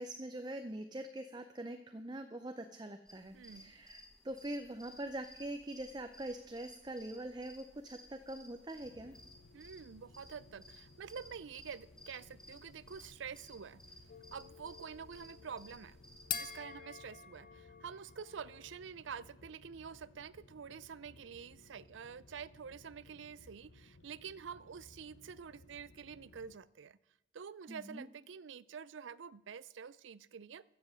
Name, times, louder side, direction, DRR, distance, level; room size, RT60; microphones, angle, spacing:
voice 1, 0.0-9.2 27.7-28.1, right 1 dB, 20° right, 7 dB, 0.6 m, -43 dB
sound 1, 3.1-16.6, left 1 dB, 5° left, 1.3 m, -59 dB
voice 2, 3.3-3.7 9.5-13.8 14.3-16.0 16.3-27.0 27.3-30.6, right 6 dB, 75° right, 19 dB, 0.4 m, -48 dB
sound 2, 8.8-26.5, left 2 dB, 80° left, 0.8 m, -61 dB
sound 3, 14.1-18.9, left 8 dB, 45° left, 0.8 m, -47 dB
14.5 x 7.7 x 6.4 m, 1.0 s
head